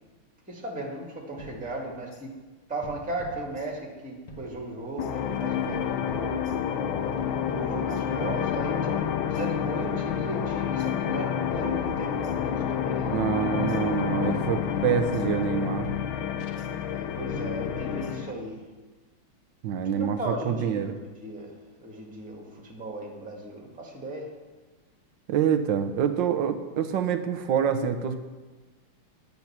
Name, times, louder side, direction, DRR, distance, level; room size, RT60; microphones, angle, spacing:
voice 1, 0.5-2.3 2.7-6.4 7.4-13.1 16.9-18.6 19.9-20.9 21.2-21.5 21.8-24.2, right 1 dB, 5° right, -2 dB, 1.7 m, -36 dB
sound 1, 1.4-2.3 2.8-4.0 4.3-5.1 5.7-6.8 7.2-8.0 8.6-9.8 10.1-10.9 11.5-12.7 13.0-13.8 14.4-15.6 15.8-16.7 17.3-18.4, right 1 dB, 20° left, 1.1 m, -46 dB
sound 2, 5.0-18.3, left 8 dB, 75° left, 1.5 m, -29 dB
voice 2, 13.1-15.9 19.6-21.0 25.3-28.2, right 8 dB, 65° right, 9 dB, 1.3 m, -26 dB
10.5 x 8.3 x 5.8 m, 1.3 s
omnidirectional pair, 2.4 m